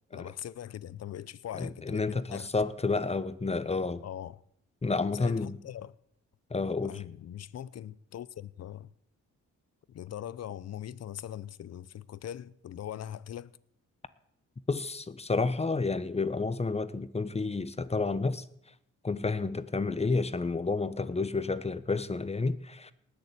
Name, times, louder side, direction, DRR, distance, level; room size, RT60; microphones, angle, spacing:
voice 1, 0.1-2.5 4.0-4.4 5.2-5.9 6.8-8.9 9.9-13.5, left 10 dB, 55° left, 0.7 m, -41 dB
voice 2, 1.6-4.0 4.8-5.6 6.5-7.0 14.7-18.4 19.0-22.9, left 3 dB, 20° left, 0.9 m, -30 dB
19.0 x 6.9 x 8.6 m
cardioid pair, 90°, 30 cm